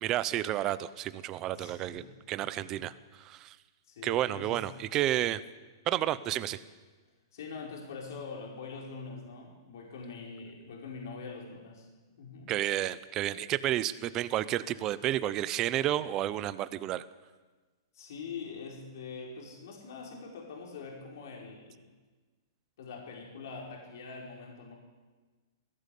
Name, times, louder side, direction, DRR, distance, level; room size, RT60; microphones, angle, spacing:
voice 1, 0.0-3.6 4.0-5.4 5.9-6.6 12.5-17.1, right 13 dB, 20° right, 15 dB, 0.6 m, -31 dB
voice 2, 1.5-2.2 2.6-2.8 3.9-4.6 6.3-6.5 7.3-11.9 12.2-12.5 17.9-21.7 22.8-24.7, left 4 dB, 55° left, -1 dB, 4.7 m, -44 dB
19.5 x 16.0 x 8.5 m, 1.3 s
hypercardioid pair, 175°, 2 cm